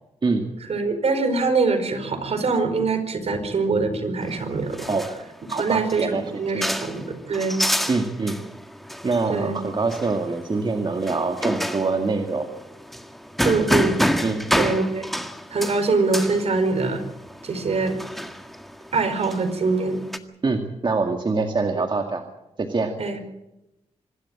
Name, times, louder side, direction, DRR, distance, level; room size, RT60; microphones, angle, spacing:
voice 1, 0.7-4.9 5.6-7.6 9.3-9.6 13.4-14.0 14.5-15.1 15.5-17.0 17.4-18.0 18.9-20.0 21.8-21.9 23.0-23.2, right 3 dB, 60° right, 8 dB, 4.7 m, -23 dB
sound 1, 4.2-20.2, equal, ahead, 1.8 m, -29 dB
voice 2, 5.5-6.2 6.5-6.7 7.9-8.4 9.0-12.5 14.2-14.4 20.4-22.2 22.6-22.9, right 3 dB, 40° right, 4 dB, 2.2 m, -24 dB
25.5 x 12.5 x 8.9 m, 0.92 s
cardioid pair, 70°, 12 cm